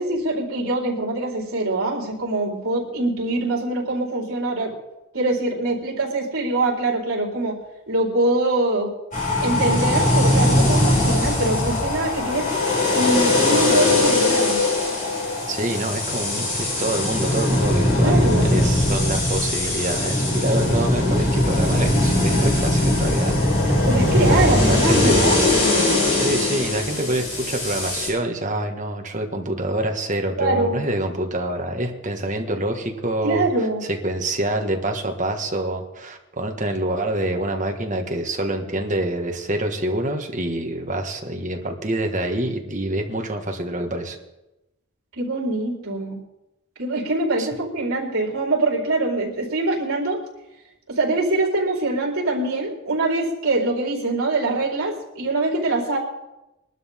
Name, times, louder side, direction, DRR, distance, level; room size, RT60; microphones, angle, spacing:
voice 1, 0.0-4.7 5.1-7.6 7.9-8.9 9.4-12.5 12.9-14.6 18.0-18.5 23.8-25.4 30.4-30.8 33.2-33.8 45.2-46.2 46.8-50.2 50.9-56.0, right 2 dB, 70° right, -2 dB, 4.5 m, -23 dB
sound 1, 9.1-28.1, left 1 dB, 35° left, 6.9 m, -20 dB
voice 2, 15.5-23.4 23.6-23.7 24.2-25.2 26.1-33.5 33.8-44.2 47.4-47.5, right 1 dB, 35° right, 3 dB, 1.8 m, -26 dB
22.5 x 12.5 x 3.7 m, 0.95 s
head